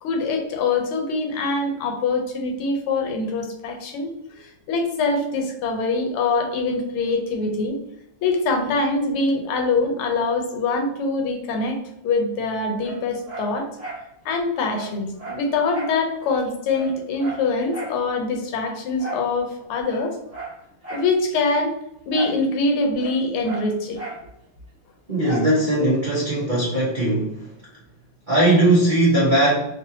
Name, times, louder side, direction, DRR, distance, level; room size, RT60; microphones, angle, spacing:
voice 1, 0.0-4.1 4.4-7.8 8.2-11.8 12.0-13.7 14.2-20.2 20.9-21.7 22.0-24.0, left 3 dB, 85° left, 3 dB, 1.6 m, -24 dB
Dog, 12.8-14.1 14.4-14.5 14.7-16.0 16.4-16.5 16.7-18.0 19.0-19.3 19.8-21.1 22.1-22.4 22.7-24.3 25.2-25.6 26.0-26.1, right 2 dB, 10° right, 0.6 m, -36 dB
voice 2, 25.1-27.5 28.3-29.5, right 1 dB, 55° right, -8 dB, 0.5 m, -19 dB
3.6 x 2.7 x 2.7 m, 0.82 s
omnidirectional pair, 2.4 m